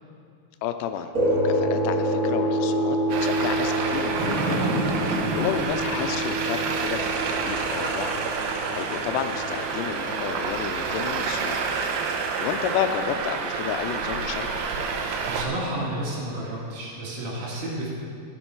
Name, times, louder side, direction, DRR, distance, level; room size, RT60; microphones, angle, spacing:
voice 1, 0.6-4.7 5.4-8.2 8.7-11.7 12.4-14.6, left 9 dB, 85° left, 8 dB, 2.7 m, -31 dB
sound 1, 1.1-9.9, equal, 25° right, 2.5 m, -27 dB
Traffic noise roadway noise, 3.1-15.5, right 5 dB, 80° right, 2.8 m, -29 dB
sound 2, 4.2-7.5 7.9-8.0, right 1 dB, 40° right, 2.0 m, -30 dB
voice 2, 14.9-17.9, right 1 dB, 65° right, -5 dB, 3.5 m, -32 dB
15.0 x 7.1 x 4.6 m, 2.3 s
omnidirectional pair, 4.8 m